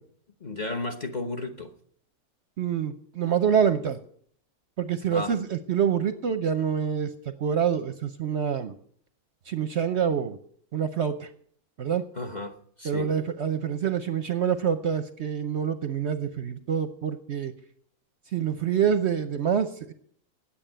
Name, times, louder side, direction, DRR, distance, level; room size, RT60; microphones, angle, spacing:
voice 1, 0.4-1.7 5.1-5.4 12.1-13.1, left 2 dB, 35° left, 0.9 m, -34 dB
voice 2, 2.6-4.0 4.8-8.7 9.5-10.4 10.7-11.3 11.8-12.0 12.8-17.5 18.3-19.9, right 8 dB, 60° right, 0.8 m, -26 dB
9.6 x 8.8 x 8.9 m
omnidirectional pair, 1.6 m